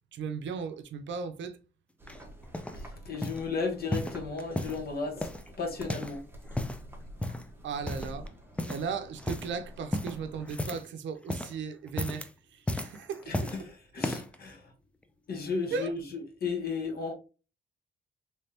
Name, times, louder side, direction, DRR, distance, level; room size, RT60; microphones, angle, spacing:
voice 1, 0.1-1.6 7.6-8.3 8.7-13.5 15.7-15.9, right 5 dB, 70° right, 0.6 m, -36 dB
sound 1, 2.0-10.5, equal, 10° right, 1.1 m, -48 dB
sound 2, 2.1-2.8 3.2-3.5 3.9-4.8 5.2-6.2 6.4-6.8 7.2-7.5 7.9-8.3 8.6-8.9 9.2-9.5 9.9-10.9 11.2-11.6 11.9-12.3 12.7-13.6 14.0-14.4 15.0-15.1, left 1 dB, 5° left, 0.5 m, -34 dB
voice 2, 2.7-5.3 5.6-6.2 13.3-14.7 15.3-17.1, left 4 dB, 50° left, 1.4 m, -34 dB
3.3 x 3.3 x 2.8 m
cardioid pair, 90°, 20 cm